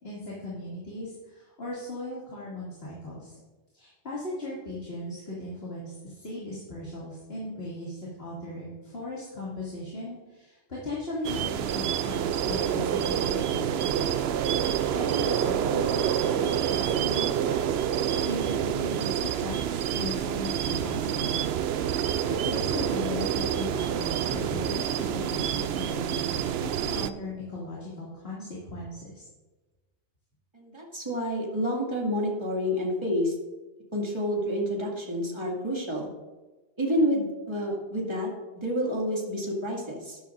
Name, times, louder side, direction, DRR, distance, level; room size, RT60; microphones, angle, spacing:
voice 1, 0.0-3.4 3.7-14.3 14.6-17.7 18.0-22.0 22.4-29.2, left 1 dB, 60° left, -7 dB, 2.8 m, -38 dB
sound 1, 11.2-27.1, right 9 dB, 70° right, 0.8 m, -27 dB
voice 2, 30.5-33.4 33.9-36.1 36.8-38.3 38.6-40.2, equal, 25° right, -3 dB, 2.4 m, -29 dB
13.5 x 11.0 x 2.6 m, 1.2 s
omnidirectional pair, 1.2 m